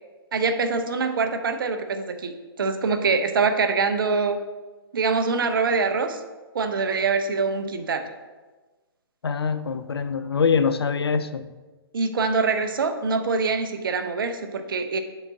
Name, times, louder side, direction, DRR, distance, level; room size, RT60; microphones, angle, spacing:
voice 1, 0.3-4.4 4.9-6.2 6.5-8.1 11.9-15.0, right 4 dB, 60° right, 8 dB, 0.6 m, -24 dB
voice 2, 9.2-11.4, left 6 dB, 75° left, 12 dB, 0.4 m, -24 dB
7.2 x 3.9 x 4.0 m, 1.3 s
figure-of-eight pair, 125°, 13 cm